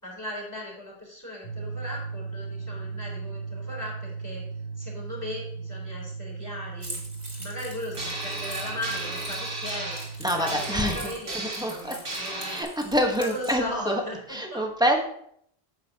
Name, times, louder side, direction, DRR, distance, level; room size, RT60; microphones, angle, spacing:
voice 1, 0.0-4.4 4.8-7.0 7.3-10.0 10.3-12.6 13.1-14.6, left 1 dB, 15° left, -3 dB, 3.5 m, -37 dB
sound 1, 1.4-10.8, right 4 dB, 65° left, 3.0 m, -37 dB
Keys jangling, 6.8-13.5, right 1 dB, 40° right, 2.1 m, -43 dB
sound 2, 7.9-12.6, right 2 dB, 60° right, 1.9 m, -35 dB
voice 2, 10.2-10.9 11.3-12.0 12.5-14.0 14.3-15.0, equal, 5° right, 1 dB, 1.1 m, -26 dB
9.1 x 8.1 x 2.8 m, 0.68 s
omnidirectional pair, 1.1 m